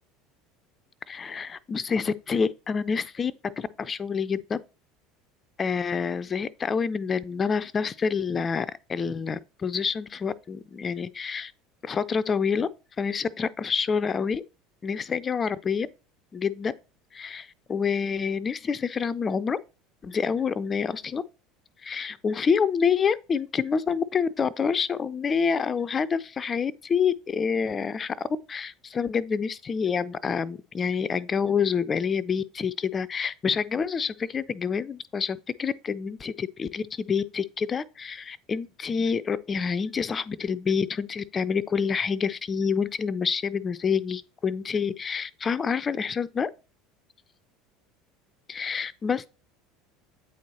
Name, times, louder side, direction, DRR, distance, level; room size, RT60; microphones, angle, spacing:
voice 1, 1.1-4.6 5.6-11.5 11.8-12.7 13.0-14.4 14.8-15.9 16.3-16.7 17.1-19.6 20.0-21.2 21.8-46.5 48.5-49.3, left 6 dB, 30° left, 0.3 m, -27 dB
8.4 x 4.4 x 2.8 m
figure-of-eight pair, 70°, 0 cm